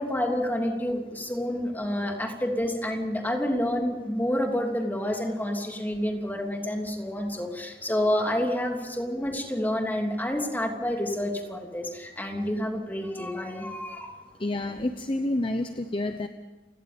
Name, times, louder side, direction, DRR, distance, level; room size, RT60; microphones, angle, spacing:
voice 1, 0.0-14.2, left 1 dB, 10° left, 2 dB, 3.0 m, -29 dB
voice 2, 14.4-16.3, left 1 dB, 30° left, 8 dB, 0.8 m, -29 dB
30.0 x 17.5 x 5.3 m, 1.3 s
head